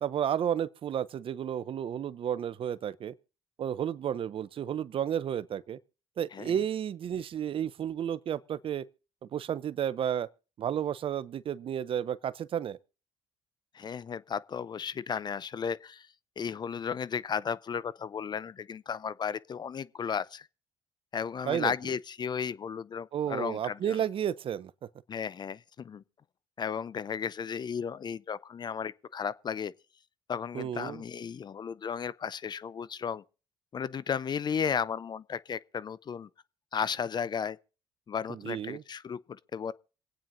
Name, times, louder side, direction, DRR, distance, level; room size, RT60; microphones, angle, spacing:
voice 1, 0.0-3.1 3.6-5.8 6.2-8.9 9.2-10.3 10.6-12.8 21.5-21.7 23.1-24.7 30.5-31.0 38.3-38.8, right 9 dB, 50° right, 0.6 m, -32 dB
voice 2, 13.7-16.1 16.4-20.5 21.1-24.0 25.1-26.0 26.6-29.7 30.3-33.2 33.7-36.3 36.7-37.6 38.1-39.7, left 7 dB, 40° left, 0.5 m, -34 dB
26.5 x 8.9 x 2.6 m
supercardioid pair, 65°, 11 cm